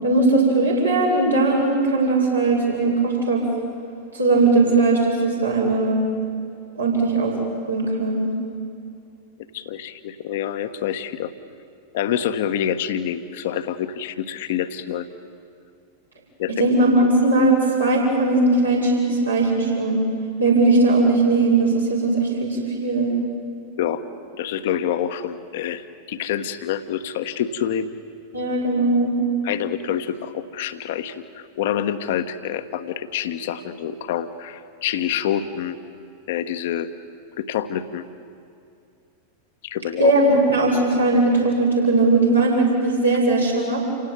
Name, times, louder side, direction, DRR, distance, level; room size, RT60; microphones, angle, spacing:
voice 1, 0.0-3.4 4.1-6.1 6.7-7.4 7.7-8.3 16.5-20.0 20.4-23.1 28.3-29.1 40.0-43.8, right 2 dB, 85° right, -4 dB, 6.9 m, -19 dB
voice 2, 9.5-11.3 11.9-15.1 16.4-16.5 23.8-24.0 24.3-27.9 29.4-35.8 36.3-36.9 37.4-38.0 39.6-40.1, left 9 dB, 55° left, 10 dB, 1.3 m, -27 dB
29.0 x 17.5 x 9.4 m, 2.4 s
figure-of-eight pair, 90°, 0 cm